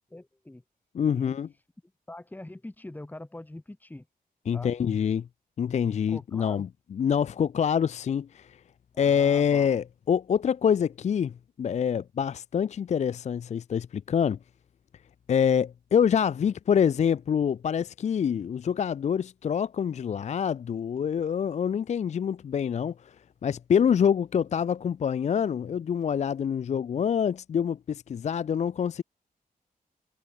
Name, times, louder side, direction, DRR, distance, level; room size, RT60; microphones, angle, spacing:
voice 1, 0.1-0.6 1.1-1.4 2.1-4.1 4.5-4.7 6.1-6.7 8.9-9.8, left 1 dB, 10° left, 1.4 m, -43 dB
voice 2, 0.9-1.5 4.5-5.3 5.6-8.6 9.0-14.4 15.3-23.2 23.4-29.0, left 8 dB, 45° left, 0.4 m, -26 dB
wide cardioid pair, 110°, 16 cm